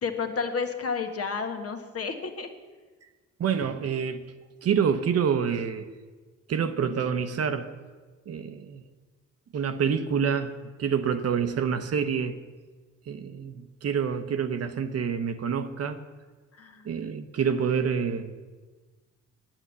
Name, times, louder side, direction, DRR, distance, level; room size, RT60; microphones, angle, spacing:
voice 1, 0.0-2.5 16.6-16.9, left 5 dB, 50° left, 1.4 m, -31 dB
voice 2, 3.4-4.3 4.6-5.9 6.5-7.7 8.3-8.8 9.5-12.4 13.1-16.0 16.8-18.3, right 7 dB, 55° right, 0.8 m, -27 dB
8.8 x 8.8 x 8.1 m
cardioid pair, 90°, 30 cm